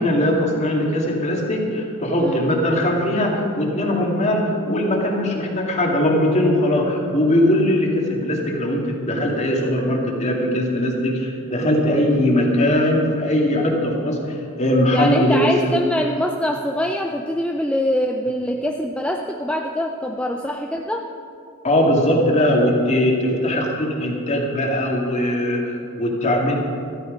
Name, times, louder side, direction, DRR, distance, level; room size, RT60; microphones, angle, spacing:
voice 1, 0.0-15.8 21.6-26.6, left 1 dB, 30° left, 0 dB, 2.2 m, -20 dB
voice 2, 14.9-21.0, equal, 5° left, 2 dB, 0.5 m, -24 dB
14.0 x 13.0 x 5.3 m, 2.5 s
head